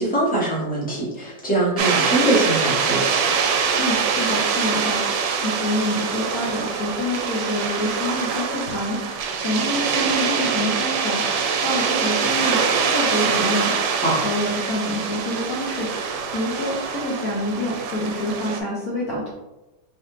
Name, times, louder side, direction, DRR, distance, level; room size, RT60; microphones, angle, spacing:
voice 1, 0.0-3.0 14.0-14.2, right 1 dB, 5° left, -8 dB, 1.1 m, -22 dB
sound 1, 1.8-18.6, right 6 dB, 75° right, 1.1 m, -24 dB
voice 2, 3.8-9.0 9.4-19.3, left 1 dB, 65° left, -5 dB, 1.0 m, -27 dB
4.1 x 3.4 x 2.6 m, 1.0 s
omnidirectional pair, 2.1 m